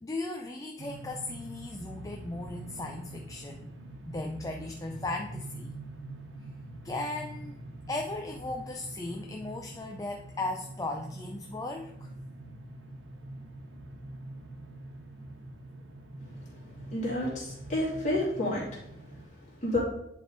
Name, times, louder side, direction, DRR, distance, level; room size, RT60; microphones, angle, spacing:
voice 1, 0.0-3.7 4.1-5.8 6.8-7.6 7.9-12.1, left 2 dB, 15° left, 3 dB, 0.4 m, -37 dB
sound 1, 0.8-19.3, right 1 dB, 85° right, 1.2 m, -45 dB
voice 2, 16.9-18.6 19.6-19.8, left 1 dB, 35° left, -6 dB, 2.8 m, -29 dB
10.5 x 3.5 x 3.9 m, 0.80 s
head